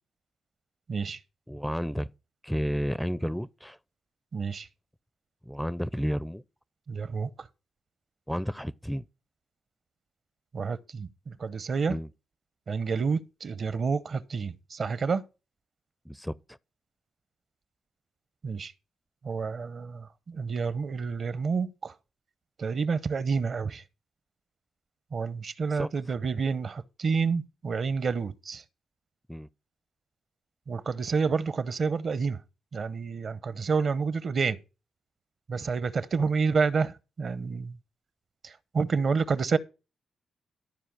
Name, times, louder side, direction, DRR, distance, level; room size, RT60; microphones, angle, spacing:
voice 1, 0.9-1.2 4.3-4.7 6.9-7.3 10.5-11.9 12.7-15.2 18.4-18.7 19.2-21.9 22.6-23.8 25.1-28.6 30.7-32.4 32.7-34.6 35.5-37.8 38.4-39.6, right 5 dB, 55° right, 0.7 m, -29 dB
voice 2, 1.5-2.1 2.4-3.8 5.5-6.4 8.3-9.0 11.9-12.1 16.1-16.4 25.7-25.9 29.3-29.5, equal, ahead, 0.4 m, -31 dB
12.5 x 4.7 x 5.9 m
cardioid pair, 65°, 0 cm